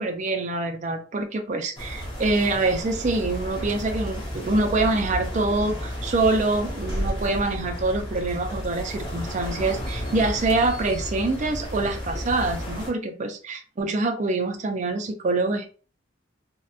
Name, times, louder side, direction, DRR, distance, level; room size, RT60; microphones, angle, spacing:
voice 1, 0.0-15.7, right 2 dB, 40° right, 6 dB, 0.4 m, -25 dB
sound 1, 1.8-12.9, equal, 25° left, 0.7 m, -33 dB
sound 2, 4.0-12.7, equal, 55° right, 1.1 m, -38 dB
2.7 x 2.1 x 2.3 m, 0.37 s
head